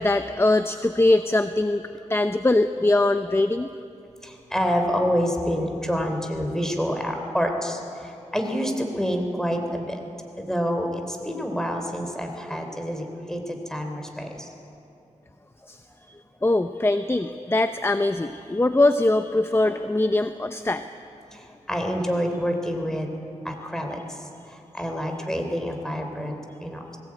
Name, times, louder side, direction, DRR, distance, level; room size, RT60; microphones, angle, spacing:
voice 1, 0.0-1.8 2.1-3.7 15.7-15.8 16.4-20.8, left 2 dB, 20° left, 9 dB, 0.7 m, -22 dB
voice 2, 4.2-10.0 10.4-14.5 21.3-21.4 21.7-23.1 23.4-24.0 24.7-27.0, equal, 5° left, 4 dB, 3.2 m, -27 dB
21.0 x 17.0 x 8.7 m, 2.7 s
wide cardioid pair, 65°, 13 cm